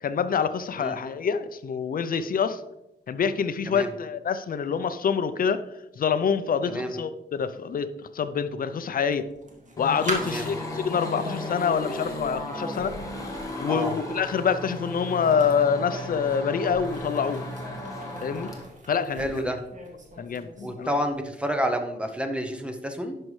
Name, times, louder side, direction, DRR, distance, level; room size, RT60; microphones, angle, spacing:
voice 1, 0.0-2.6 3.1-5.6 6.0-7.9 8.1-9.3 9.8-13.0 13.6-17.5 18.2-18.5 18.9-19.6 20.2-20.9, left 6 dB, 55° left, 11 dB, 0.5 m, -26 dB
sound 1, 9.1-20.9, right 1 dB, 45° right, 1.4 m, -40 dB
sound 2, 9.8-18.6, left 2 dB, 20° left, 1.2 m, -35 dB
voice 2, 10.2-10.5 13.7-13.9 19.2-19.6 20.6-23.1, equal, 5° right, 5 dB, 0.7 m, -29 dB
10.5 x 5.4 x 3.2 m, 0.88 s
wide cardioid pair, 180°, 18 cm